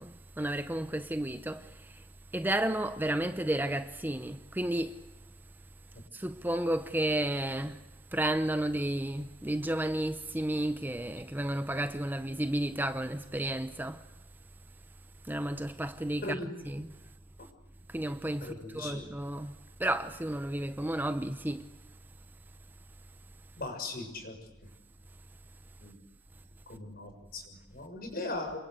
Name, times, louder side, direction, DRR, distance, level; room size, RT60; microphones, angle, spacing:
voice 1, 0.0-2.0 2.3-5.0 6.1-7.8 8.1-14.0 15.2-16.4 16.7-16.9 17.9-21.7, right 1 dB, 10° right, 0.8 m, -32 dB
voice 2, 18.4-19.1 23.6-24.4 25.8-26.0 26.7-28.6, left 2 dB, 55° left, 6.6 m, -39 dB
27.5 x 23.5 x 8.1 m
head